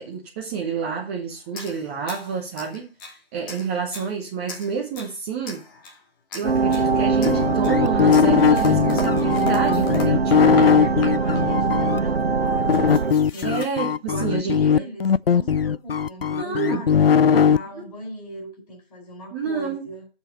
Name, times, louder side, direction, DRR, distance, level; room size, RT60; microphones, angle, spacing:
voice 1, 0.0-5.6 6.3-10.7 13.4-14.9 16.4-16.9 17.3-17.9 19.3-19.9, right 6 dB, 15° right, 0.8 m, -29 dB
sound 1, 1.5-3.2 3.5-4.1 4.5-5.2 5.4-6.0 6.3-6.9 7.2-10.7 11.0-11.4 12.2-12.3 12.5-13.7, left 3 dB, 20° left, 1.7 m, -36 dB
sound 2, 6.4-13.1, right 4 dB, 75° right, 0.8 m, -22 dB
sound 3, 7.3-12.0 12.7-17.6, left 7 dB, 70° left, 0.5 m, -19 dB
voice 2, 10.4-12.9 13.3-13.7 14.1-20.1, right 1 dB, 40° left, 4.5 m, -38 dB
7.3 x 5.6 x 7.1 m
figure-of-eight pair, 145°, 30 cm